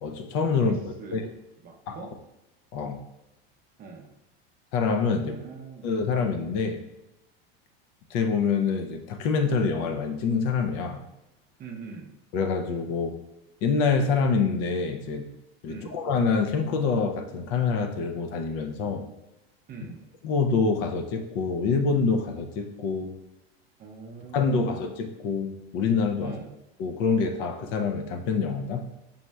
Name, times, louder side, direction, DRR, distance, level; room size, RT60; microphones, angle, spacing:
voice 1, 0.0-1.3 1.9-2.0 2.7-3.0 4.7-5.4 5.8-6.8 8.1-11.0 12.3-13.1 13.6-15.3 15.6-19.0 20.2-23.2 24.3-26.3 26.8-28.8, left 5 dB, 55° left, 6 dB, 0.5 m, -26 dB
voice 2, 0.6-1.3 1.6-2.1 3.8-4.1 5.2-5.9 11.6-12.1 15.7-16.0 19.7-20.1 23.8-24.8 26.2-26.6, right 4 dB, 30° right, 1 dB, 0.5 m, -42 dB
5.3 x 3.0 x 2.2 m, 0.94 s
supercardioid pair, 125°, 31 cm